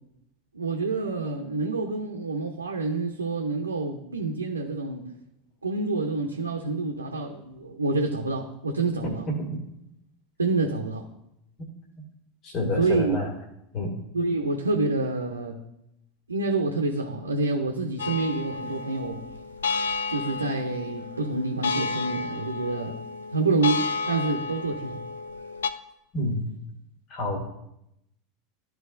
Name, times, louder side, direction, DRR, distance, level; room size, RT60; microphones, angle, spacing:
voice 1, 0.5-5.0 5.6-9.2 10.4-11.0 12.8-13.2 14.1-15.6 16.3-19.2 20.1-23.0 23.3-25.0, right 3 dB, 85° right, 1 dB, 0.7 m, -27 dB
voice 2, 9.3-9.6 12.4-13.3 13.7-14.0 26.1-26.5 27.1-27.4, left 1 dB, 45° left, -1 dB, 2.0 m, -28 dB
sound 1, 18.0-25.7, left 4 dB, 75° left, 0.4 m, -32 dB
13.0 x 4.7 x 2.6 m, 0.82 s
figure-of-eight pair, 80°, 0 cm